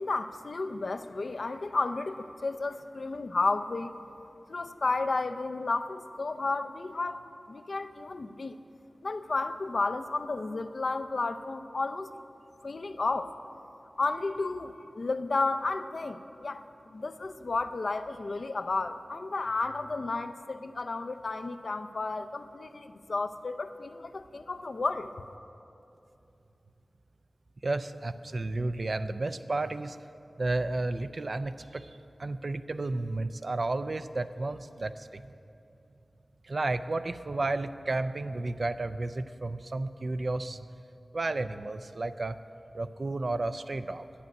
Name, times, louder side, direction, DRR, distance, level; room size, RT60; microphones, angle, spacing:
voice 1, 0.0-4.0 4.5-7.2 7.5-8.6 9.0-12.1 12.6-13.3 14.0-16.6 16.9-25.1, left 3 dB, 70° left, 9 dB, 0.5 m, -32 dB
voice 2, 27.6-30.0 30.4-35.3 36.4-40.7 41.1-42.4 42.7-44.0, right 2 dB, 60° right, 11 dB, 0.5 m, -32 dB
11.5 x 9.3 x 7.8 m, 2.7 s
wide cardioid pair, 80°, 0 cm